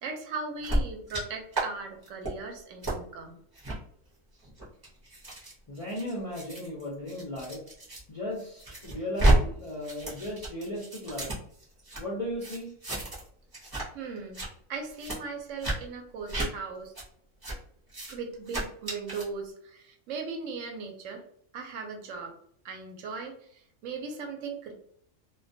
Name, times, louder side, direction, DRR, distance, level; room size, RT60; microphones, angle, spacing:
voice 1, 0.0-3.4 13.9-16.9 18.1-21.2 21.5-22.4 22.6-24.7, right 4 dB, 75° right, 2 dB, 0.9 m, -38 dB
sound 1, 0.6-1.2 1.5-1.6 2.0-2.3 2.8-3.0 3.5-3.8 4.4-8.0 8.4-9.4 9.6-12.0 12.4-13.3 13.5-13.8 14.2-14.5 15.0-15.2 15.6-15.8 16.3-16.5 16.9-17.0 17.4-17.6 17.9-18.1 18.5-19.2, right 1 dB, 25° right, 0.6 m, -30 dB
voice 2, 5.7-7.6 8.1-11.3 12.0-12.7, left 1 dB, 55° left, -5 dB, 0.4 m, -36 dB
2.2 x 2.2 x 2.6 m, 0.65 s
omnidirectional pair, 1.4 m